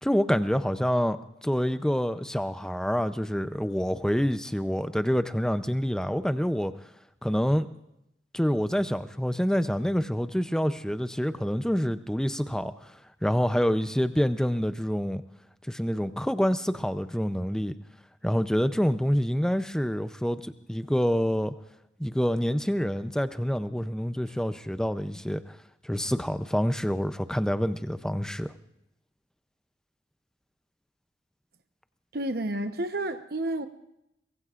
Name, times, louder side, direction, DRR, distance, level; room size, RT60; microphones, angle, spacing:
voice 1, 0.0-6.7 7.2-7.7 8.3-12.9 13.2-15.2 15.7-17.7 18.2-21.5 22.0-25.6 25.8-28.5, equal, 5° left, 0.5 m, -27 dB
voice 2, 32.1-33.7, right 1 dB, 55° right, 1.0 m, -30 dB
23.5 x 22.0 x 2.5 m
head